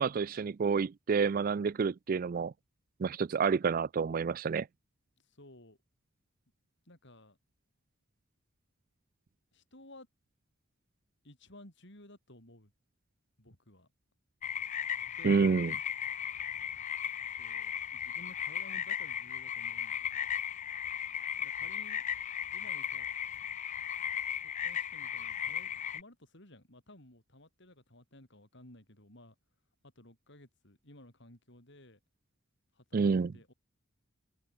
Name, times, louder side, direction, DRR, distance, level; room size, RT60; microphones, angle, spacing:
voice 1, 0.0-2.5 3.0-4.7 15.2-15.7 32.9-33.3, right 5 dB, 45° right, 0.4 m, -29 dB
voice 2, 5.3-5.8 6.9-7.4 9.5-10.1 11.2-12.7 13.4-13.9 15.2-15.7 17.4-20.3 21.4-22.0 22.5-23.1 24.4-29.3 29.8-32.0 32.7-33.5, left 1 dB, 55° left, 5.9 m, -56 dB
sound 1, 14.4-26.0, left 9 dB, 35° left, 0.4 m, -36 dB
head